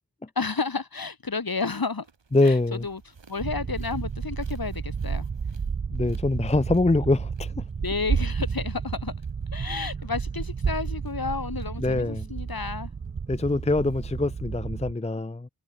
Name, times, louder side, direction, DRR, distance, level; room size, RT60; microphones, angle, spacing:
voice 1, 0.4-2.1 2.4-3.0 3.3-5.3 7.8-9.1 9.5-12.9, left 4 dB, 55° left, 1.7 m, -31 dB
sound 1, 2.0-14.2, right 5 dB, 85° right, 2.2 m, -56 dB
voice 2, 2.3-2.8 5.9-7.6 11.8-12.3 13.3-15.5, left 2 dB, 15° left, 0.6 m, -24 dB
sound 2, 3.4-14.9, right 5 dB, 30° right, 0.4 m, -31 dB
wide cardioid pair, 45°, 43 cm